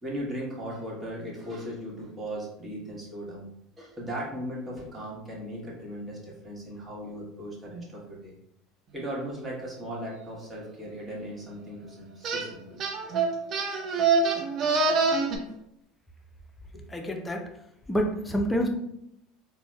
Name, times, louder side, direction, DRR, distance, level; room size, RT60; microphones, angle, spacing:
voice 1, 0.0-3.5 3.8-8.3 8.9-12.8 15.2-15.6 16.7-16.8, equal, 25° right, -4 dB, 1.3 m, -37 dB
sound 1, 12.2-12.5 12.8-15.4, right 4 dB, 50° right, 0.5 m, -25 dB
voice 2, 16.9-17.5 17.9-18.7, equal, 10° left, 3 dB, 0.5 m, -27 dB
3.9 x 2.1 x 2.3 m, 0.77 s
hypercardioid pair, 85°, 0 cm